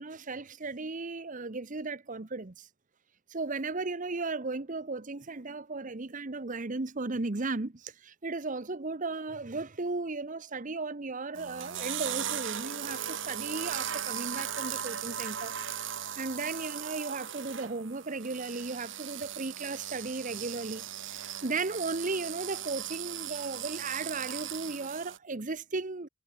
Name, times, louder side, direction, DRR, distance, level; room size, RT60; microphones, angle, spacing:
voice 1, 0.0-2.7 3.3-15.9 16.2-26.1, right 3 dB, 40° right, 1.0 m, -36 dB
sound 1, 11.4-25.2, right 9 dB, 65° right, 4.1 m, -38 dB
head